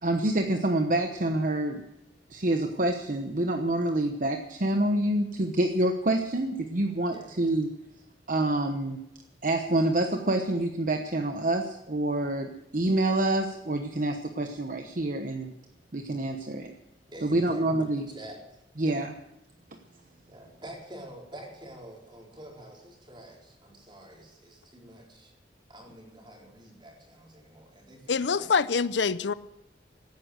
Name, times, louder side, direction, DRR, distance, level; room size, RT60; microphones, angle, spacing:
voice 1, 0.0-1.8 2.3-7.7 8.3-9.0 9.4-15.5 15.9-16.7 17.2-18.0 18.8-19.1, right 1 dB, 50° right, 1.0 m, -27 dB
voice 2, 17.1-18.4 18.8-19.1 20.3-25.3 25.7-28.5, right 1 dB, 25° right, 4.3 m, -47 dB
voice 3, 28.1-29.3, left 5 dB, 80° left, 0.6 m, -25 dB
16.0 x 9.9 x 8.0 m
head